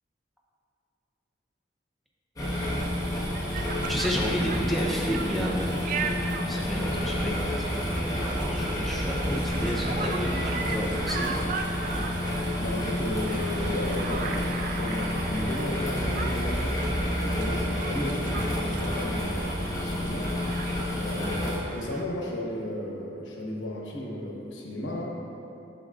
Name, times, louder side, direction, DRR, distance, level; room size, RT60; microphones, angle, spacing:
sound 1, 2.4-21.6, left 1 dB, 20° left, 1.3 m, -29 dB
Conversation, 2.5-22.0, right 5 dB, 45° right, 0.3 m, -38 dB
voice 1, 3.9-11.6, equal, ahead, -4 dB, 0.7 m, -32 dB
voice 2, 12.6-20.4 21.0-25.2, left 1 dB, 85° left, -2 dB, 1.0 m, -34 dB
8.0 x 6.4 x 2.4 m, 2.9 s
head